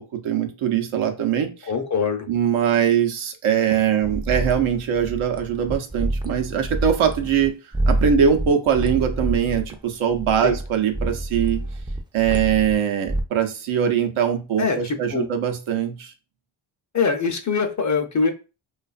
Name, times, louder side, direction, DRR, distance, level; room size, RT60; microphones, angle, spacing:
voice 1, 0.0-1.7 2.3-7.6 7.9-11.6 12.1-16.1, right 8 dB, 75° right, 0.7 m, -22 dB
voice 2, 1.7-2.3 10.4-10.6 14.6-15.3 16.9-18.3, left 5 dB, 35° left, 0.6 m, -23 dB
sound 1, 4.0-7.5 7.7-12.7 13.1-13.2, right 1 dB, 10° right, 0.4 m, -27 dB
2.5 x 2.4 x 2.4 m
cardioid pair, 55°, 49 cm